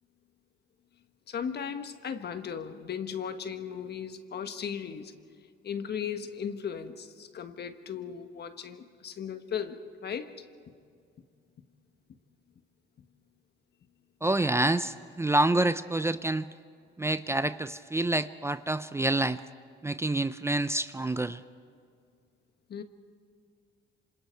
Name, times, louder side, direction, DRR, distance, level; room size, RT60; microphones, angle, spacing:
voice 1, 1.3-5.2 5.6-10.4 22.7-22.8, left 7 dB, 55° left, 9 dB, 1.4 m, -36 dB
voice 2, 14.2-16.5 17.0-19.4 19.8-21.4, right 2 dB, 15° right, 13 dB, 0.5 m, -27 dB
27.0 x 26.5 x 4.5 m, 2.2 s
cardioid pair, 90°, 20 cm